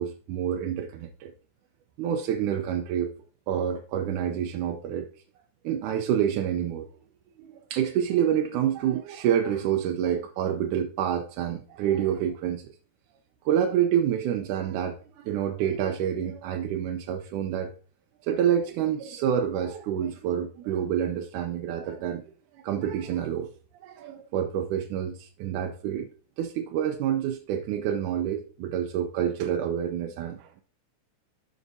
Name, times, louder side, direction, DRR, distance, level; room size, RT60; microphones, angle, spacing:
voice 1, 0.0-1.3 2.0-3.1 3.5-5.1 5.6-6.9 7.4-12.7 13.4-17.7 18.2-22.2 22.6-23.5 23.8-26.1 26.4-30.6, right 9 dB, 85° right, 2.1 m, -28 dB
13.0 x 5.7 x 2.7 m
omnidirectional pair, 3.5 m